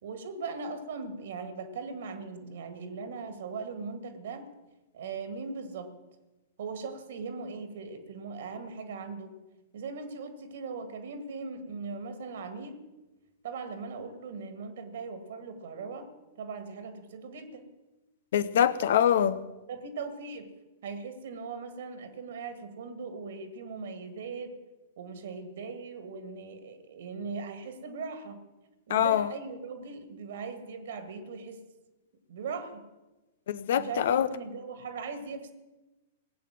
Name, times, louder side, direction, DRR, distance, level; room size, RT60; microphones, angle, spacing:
voice 1, 0.0-4.5 4.9-6.0 6.6-9.3 9.7-12.8 13.4-16.1 16.4-17.7 19.7-20.5 20.8-24.5 25.0-28.4 28.9-31.6 32.3-32.8 33.8-35.5, right 4 dB, 60° right, 8 dB, 2.1 m, -39 dB
voice 2, 18.3-19.4 28.9-29.3 33.5-34.3, left 9 dB, 60° left, 16 dB, 0.8 m, -24 dB
19.0 x 8.5 x 7.6 m, 1.1 s
figure-of-eight pair, 105°, 0 cm